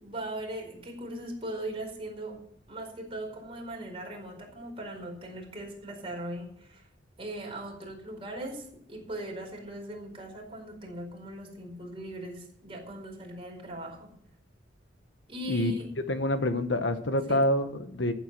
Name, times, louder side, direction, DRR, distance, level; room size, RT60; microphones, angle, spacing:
voice 1, 0.0-2.4 2.7-6.9 7.2-14.1 15.3-15.9 17.3-17.4, right 1 dB, 30° right, 0 dB, 4.7 m, -39 dB
voice 2, 16.1-18.1, left 1 dB, 80° left, 9 dB, 1.3 m, -27 dB
14.5 x 8.3 x 6.1 m, 0.69 s
head